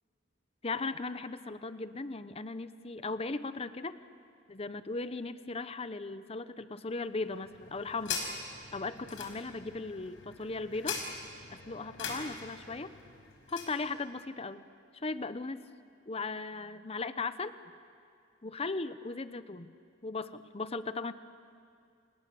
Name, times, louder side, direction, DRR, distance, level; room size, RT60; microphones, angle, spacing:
voice 1, 0.6-4.0 4.5-8.2 8.7-11.0 11.5-12.9 13.5-14.6 14.9-15.6 16.1-17.5 18.4-19.7 20.0-21.1, left 3 dB, 30° left, 13 dB, 0.8 m, -37 dB
sound 1, 7.2-13.8, left 5 dB, 80° left, 4.8 m, -42 dB
29.0 x 27.5 x 7.0 m, 2.4 s
head